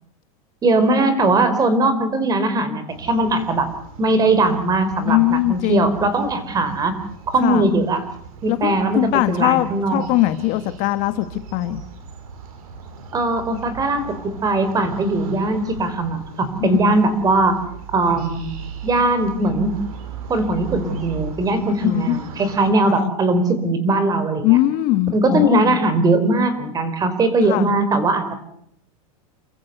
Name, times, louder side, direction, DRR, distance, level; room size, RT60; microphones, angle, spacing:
voice 1, 0.6-3.7 4.0-7.0 7.3-8.0 8.4-10.0 13.1-17.6 17.9-18.5 18.8-19.7 20.3-24.6 25.1-28.3, right 2 dB, 20° right, 11 dB, 4.4 m, -20 dB
sound 1, 2.9-22.7, right 6 dB, 75° right, 5.6 m, -38 dB
voice 2, 5.0-5.9 7.4-7.7 8.5-11.3 11.5-11.8 16.6-17.0 21.7-22.2 22.9-23.1 24.4-25.8 27.5-27.7, left 16 dB, 45° left, 10 dB, 1.7 m, -20 dB
30.0 x 14.5 x 8.1 m, 0.71 s
supercardioid pair, 140°, 19 cm